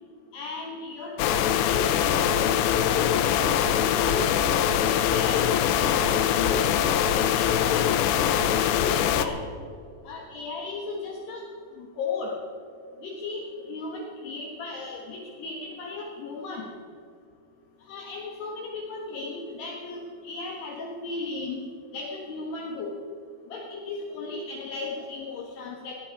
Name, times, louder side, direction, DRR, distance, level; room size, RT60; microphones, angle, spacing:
voice 1, 0.3-4.4 4.8-6.8 7.1-7.3 7.6-8.0 8.9-9.4 10.1-11.4 11.8-12.4 13.0-16.7 17.9-20.0 20.2-21.6 21.9-22.9 23.5-25.9, left 3 dB, 65° left, -1 dB, 3.2 m, -36 dB
sound 1, 1.2-9.3, left 9 dB, 85° left, 2.5 m, -23 dB
18.5 x 16.0 x 4.7 m, 2.5 s
omnidirectional pair, 5.9 m